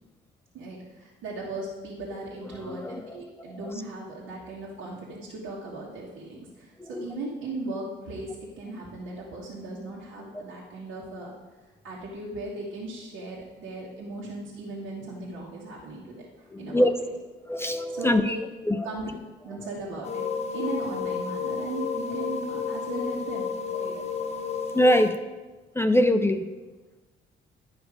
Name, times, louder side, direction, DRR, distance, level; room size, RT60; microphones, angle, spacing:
voice 1, 0.5-11.3 11.8-16.9 17.9-18.3 18.8-19.0 19.4-23.5 23.8-24.0, right 2 dB, 80° right, -4 dB, 1.4 m, -37 dB
voice 2, 2.5-3.7 6.8-7.1 10.3-10.4 16.5-16.9 17.5-18.4 18.7-18.9 23.8-24.0 24.7-25.2 25.7-26.5, left 1 dB, 10° left, 8 dB, 0.4 m, -24 dB
sound 1, 20.0-25.1, left 6 dB, 35° left, 0.9 m, -31 dB
10.0 x 5.3 x 4.9 m, 1.2 s
cardioid pair, 90°, 20 cm